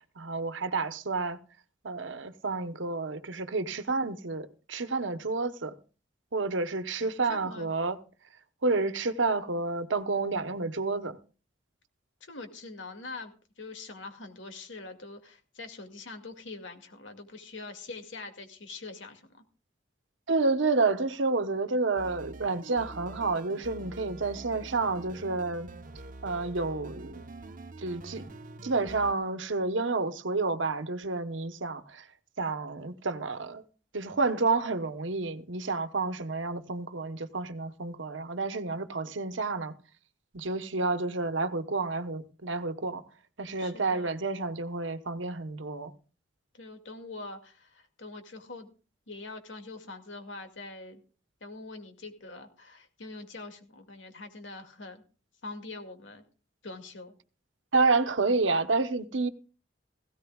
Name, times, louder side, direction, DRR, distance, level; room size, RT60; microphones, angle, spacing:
voice 1, 0.2-1.4 1.8-5.8 6.3-8.0 8.6-11.2 20.3-25.7 26.2-27.3 27.8-28.3 28.6-32.1 32.4-33.6 33.9-39.8 40.3-43.0 43.4-45.9 57.7-59.3, right 3 dB, 80° right, 1.1 m, -30 dB
voice 2, 7.0-7.7 12.2-19.4 43.6-44.1 46.5-48.7 49.1-51.0 51.4-55.0 55.4-56.2 56.6-57.1, left 3 dB, 80° left, 2.3 m, -44 dB
sound 1, 22.0-29.1, right 2 dB, 45° right, 0.9 m, -45 dB
17.5 x 16.5 x 2.4 m
head